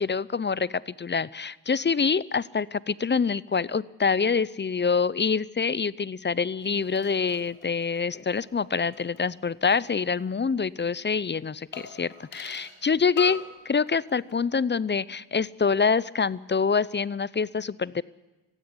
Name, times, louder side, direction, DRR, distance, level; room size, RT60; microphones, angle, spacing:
voice 1, 0.0-18.0, left 5 dB, 25° left, 20 dB, 0.6 m, -26 dB
sound 1, 6.6-9.9 10.2-10.3 11.7-12.8 13.2-13.6 13.9-14.4 14.7-14.8, left 4 dB, 80° left, 5.2 m, -44 dB
17.0 x 16.0 x 9.9 m, 1.1 s
cardioid pair, 60°, 45 cm